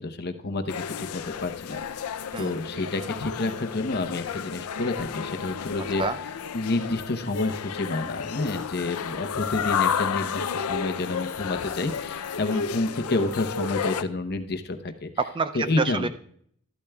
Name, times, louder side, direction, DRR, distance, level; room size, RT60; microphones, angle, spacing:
voice 1, 0.0-1.8 2.4-6.0 6.5-15.1 15.5-16.1, left 2 dB, 45° left, 6 dB, 0.8 m, -29 dB
sound 1, 0.7-14.0, left 7 dB, 80° left, 0.5 m, -32 dB
voice 2, 15.2-16.1, right 4 dB, 20° right, 11 dB, 0.3 m, -28 dB
12.5 x 12.0 x 2.3 m, 0.63 s
head